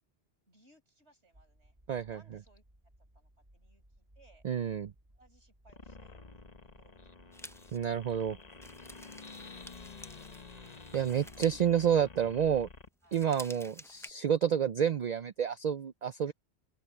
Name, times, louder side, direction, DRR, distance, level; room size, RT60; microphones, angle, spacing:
voice 1, 0.5-1.8 2.1-2.6 3.1-4.4 5.2-7.3 8.9-10.3 13.0-13.2 16.2-16.3, right 2 dB, 75° right, 5.8 m, -66 dB
sound 1, 1.3-10.7, right 1 dB, 25° right, 6.8 m, -62 dB
voice 2, 1.9-2.2 4.4-4.9 7.7-8.4 10.9-12.7 13.1-16.3, right 8 dB, 55° right, 0.5 m, -29 dB
sound 2, 5.7-12.9, left 4 dB, 35° left, 1.2 m, -50 dB
sound 3, 7.3-12.6 13.0-14.1, equal, 5° left, 0.5 m, -51 dB
open air
omnidirectional pair, 1.2 m